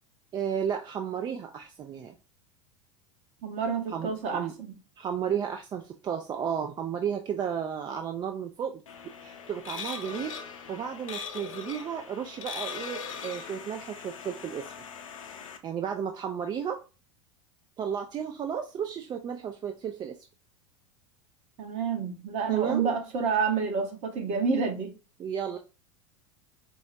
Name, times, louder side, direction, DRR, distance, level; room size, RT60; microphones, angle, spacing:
voice 1, 0.3-2.1 3.9-4.6 5.0-8.8 9.2-10.3 10.7-14.7 15.6-16.8 17.8-20.2 22.5-22.9 25.2-25.6, right 8 dB, 25° right, 0.4 m, -33 dB
voice 2, 3.4-4.7 21.6-24.9, right 5 dB, 45° right, 0.9 m, -29 dB
sound 1, 8.9-15.6, left 6 dB, 75° left, 0.5 m, -40 dB
4.6 x 2.1 x 2.5 m
figure-of-eight pair, 85°, 17 cm